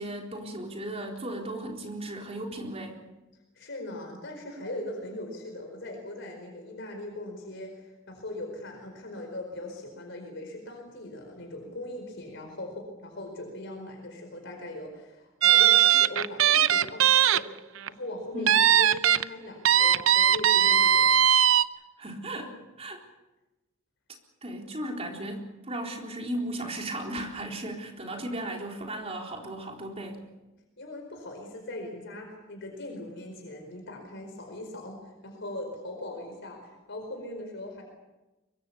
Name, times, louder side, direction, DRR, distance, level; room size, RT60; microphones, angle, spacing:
voice 1, 0.0-3.0 18.3-18.6 22.0-23.0 24.4-30.2, right 1 dB, 30° right, 1 dB, 4.0 m, -36 dB
voice 2, 3.5-17.5 17.9-21.2 30.8-37.8, left 1 dB, 60° left, 3 dB, 4.7 m, -40 dB
sound 1, 15.4-17.4 17.8-17.9 18.5-19.2 19.6-21.6, right 10 dB, 70° right, 0.7 m, -20 dB
24.0 x 23.0 x 7.0 m, 1.0 s
head